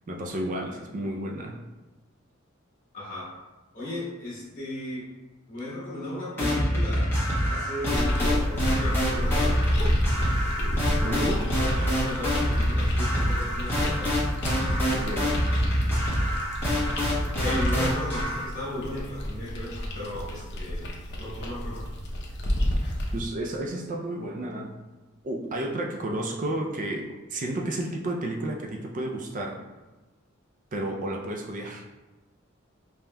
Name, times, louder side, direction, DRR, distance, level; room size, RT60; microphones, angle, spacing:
voice 1, 0.1-1.6 11.0-11.4 14.9-15.4 23.1-24.8 25.2-29.6 30.7-31.8, right 1 dB, 40° right, 0 dB, 0.4 m, -32 dB
voice 2, 2.9-3.4 3.7-5.1 5.5-7.1 7.5-9.6 11.7-14.1 17.4-20.9 21.1-21.9, left 1 dB, 40° left, -8 dB, 1.5 m, -35 dB
sound 1, 6.4-18.4, equal, 10° left, 1.1 m, -26 dB
sound 2, 8.0-23.2, equal, 55° left, 0.7 m, -31 dB
5.2 x 2.8 x 2.2 m, 1.2 s
head